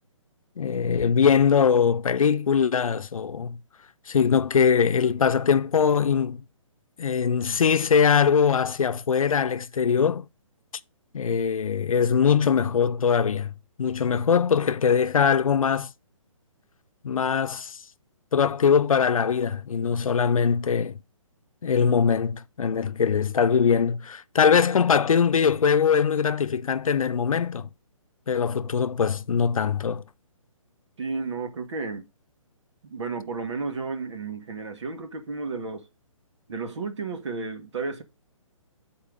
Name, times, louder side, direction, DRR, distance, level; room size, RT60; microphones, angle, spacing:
voice 1, 0.6-3.6 4.1-6.4 7.0-10.2 11.1-13.5 13.8-15.9 17.0-17.8 18.3-21.0 21.6-27.7 28.3-30.0, left 6 dB, 85° left, 0.7 m, -22 dB
voice 2, 31.0-32.1 32.8-35.9 36.5-38.0, right 4 dB, 60° right, 1.7 m, -32 dB
7.5 x 4.5 x 5.0 m
hypercardioid pair, 170°, 17 cm